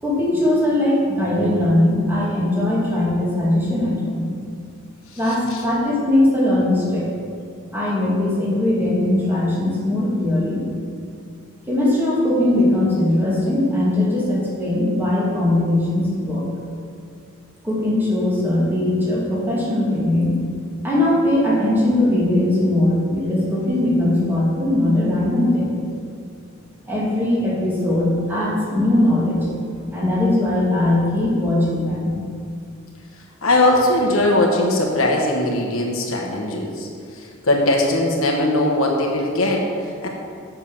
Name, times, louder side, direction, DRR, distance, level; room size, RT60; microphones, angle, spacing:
voice 1, 0.0-4.3 5.2-7.1 7.7-10.6 11.7-16.5 17.6-20.4 20.8-25.8 26.9-29.5 29.9-32.2, left 1 dB, 10° right, -6 dB, 2.2 m, -20 dB
voice 2, 5.1-5.6 33.1-40.1, left 1 dB, 85° left, -1 dB, 1.2 m, -20 dB
7.3 x 6.1 x 7.0 m, 2.3 s
head